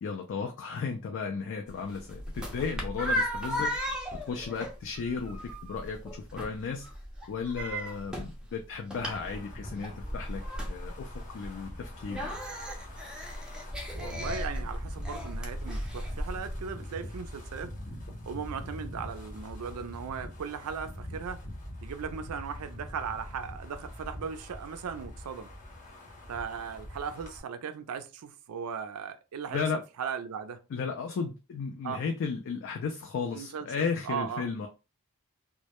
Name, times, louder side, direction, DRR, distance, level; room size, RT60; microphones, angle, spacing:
voice 1, 0.0-3.7 4.2-6.9 7.3-12.4 29.5-29.8 30.7-34.7, left 5 dB, 55° left, 0.3 m, -34 dB
sound 1, 1.7-16.6, equal, 5° right, 0.4 m, -36 dB
Wind, 8.9-27.4, left 1 dB, 35° left, 0.7 m, -43 dB
voice 2, 13.9-17.7 18.3-21.5 21.8-25.5 26.3-29.6 30.0-30.6 31.8-32.0 33.3-34.5, right 6 dB, 80° right, 0.4 m, -37 dB
2.1 x 2.0 x 2.8 m
head